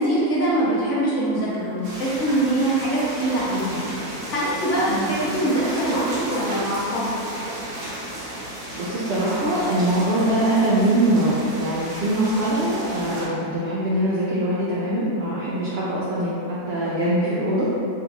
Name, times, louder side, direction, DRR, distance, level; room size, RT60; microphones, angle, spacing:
voice 1, 0.0-3.8 4.1-7.1 15.5-15.7, right 1 dB, 60° left, -7 dB, 0.9 m, -23 dB
sound 1, 1.8-13.3, right 1 dB, 60° right, 1.0 m, -34 dB
voice 2, 8.7-17.8, right 1 dB, 80° right, -7 dB, 0.5 m, -22 dB
3.7 x 2.3 x 2.8 m, 2.5 s
omnidirectional pair, 1.6 m